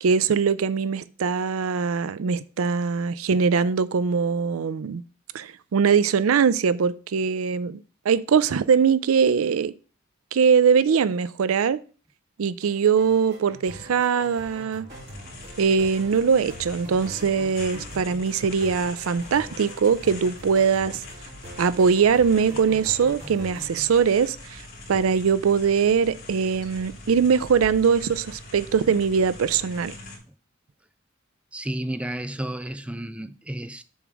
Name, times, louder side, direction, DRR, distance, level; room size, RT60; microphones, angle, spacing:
voice 1, 0.0-5.0 5.3-7.8 8.0-9.7 10.3-11.8 12.4-14.9 15.6-21.0 21.6-24.6 24.9-29.9, right 6 dB, 80° right, 0.4 m, -22 dB
sound 1, 12.6-23.9, equal, 55° right, 2.1 m, -43 dB
sound 2, 14.9-30.2, left 2 dB, 50° left, 3.1 m, -43 dB
voice 2, 31.5-33.8, right 1 dB, 5° right, 0.4 m, -32 dB
7.1 x 3.5 x 6.1 m
head